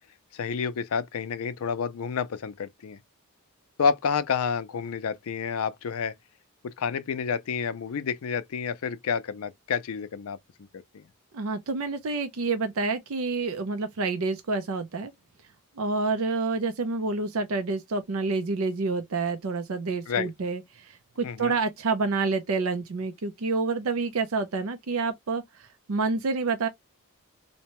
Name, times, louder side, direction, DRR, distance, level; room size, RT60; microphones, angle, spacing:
voice 1, 0.3-3.0 3.8-6.1 6.6-10.4 10.7-11.0 20.1-20.3 21.2-21.5, left 6 dB, 75° left, 0.4 m, -29 dB
voice 2, 11.3-15.1 15.8-26.7, right 3 dB, 70° right, 0.5 m, -28 dB
2.7 x 2.2 x 2.9 m
head